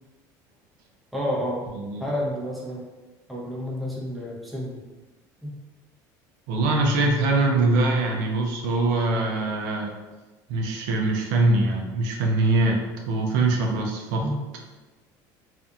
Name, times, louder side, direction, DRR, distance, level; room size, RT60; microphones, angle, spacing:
voice 1, 1.1-1.7 2.0-2.9 3.3-4.8 5.4-5.6 14.2-14.4, equal, ahead, -5 dB, 0.7 m, -30 dB
voice 2, 6.5-9.9 10.5-12.8 13.1-14.3, right 2 dB, 85° right, 0 dB, 0.5 m, -23 dB
2.6 x 2.5 x 2.3 m, 1.2 s
supercardioid pair, 110°, 9 cm